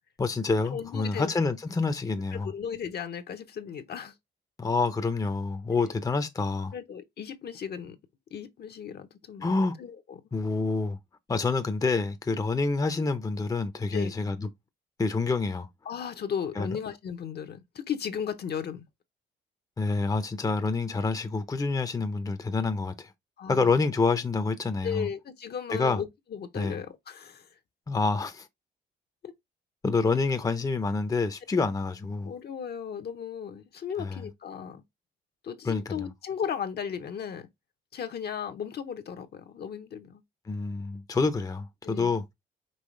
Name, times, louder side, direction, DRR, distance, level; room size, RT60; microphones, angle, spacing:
voice 1, 0.2-2.5 4.6-6.7 9.4-9.7 10.3-11.0 11.3-14.5 15.0-15.7 16.6-16.7 19.8-23.1 23.5-25.1 25.7-26.0 26.5-26.8 27.9-28.5 29.8-32.3 34.0-34.2 35.6-36.1 40.5-42.3, left 3 dB, 20° left, 0.6 m, -27 dB
voice 2, 0.7-1.3 2.3-4.1 6.7-8.0 8.3-9.5 9.8-10.2 13.9-14.1 15.8-18.8 23.4-23.7 24.8-27.5 29.2-29.3 32.2-34.8 35.4-37.5 37.9-40.2 41.8-42.2, left 7 dB, 55° left, 0.8 m, -36 dB
5.6 x 3.1 x 3.1 m
cardioid pair, 90°, 20 cm